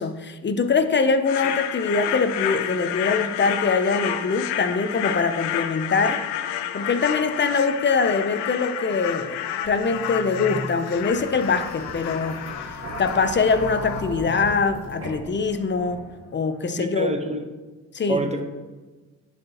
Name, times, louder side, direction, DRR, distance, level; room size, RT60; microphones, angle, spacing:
voice 1, 0.0-6.2 6.7-12.7 13.0-16.1 16.3-17.1 17.9-18.2, left 4 dB, 25° left, 10 dB, 0.6 m, -23 dB
sound 1, 1.2-14.0, left 10 dB, 75° left, 0.6 m, -30 dB
sound 2, 9.6-16.4, equal, 30° right, 1.8 m, -37 dB
voice 2, 16.8-17.4 18.1-18.4, right 2 dB, 15° right, 5 dB, 1.0 m, -27 dB
10.5 x 3.9 x 2.9 m, 1.3 s
supercardioid pair, 55°, 42 cm